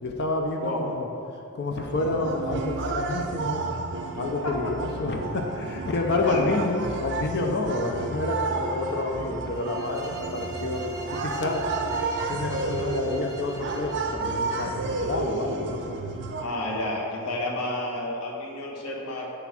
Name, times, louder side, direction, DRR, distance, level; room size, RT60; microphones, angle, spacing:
voice 1, 0.0-1.1 1.5-3.6 4.1-10.8 11.2-11.6 12.3-16.0, left 2 dB, 50° left, 2 dB, 0.6 m, -29 dB
sound 1, 1.9-16.5, right 3 dB, 55° right, 0.6 m, -31 dB
voice 2, 4.4-4.7 6.3-6.6 16.4-19.3, left 1 dB, 80° left, -2 dB, 1.2 m, -30 dB
sound 2, 9.5-14.3, right 4 dB, 15° right, 0.7 m, -41 dB
7.9 x 3.5 x 5.8 m, 2.7 s
head